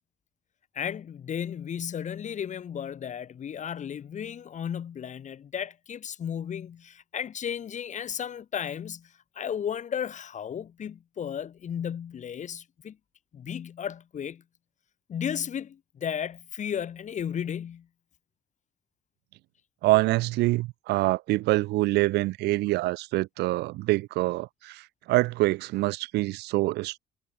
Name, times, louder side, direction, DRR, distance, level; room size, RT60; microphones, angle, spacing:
voice 1, 0.7-13.0 13.3-14.4 15.1-17.9, left 8 dB, 45° left, 3.0 m, -34 dB
voice 2, 19.8-27.0, right 19 dB, 85° right, 1.6 m, -25 dB
cardioid pair, 110°, 17 cm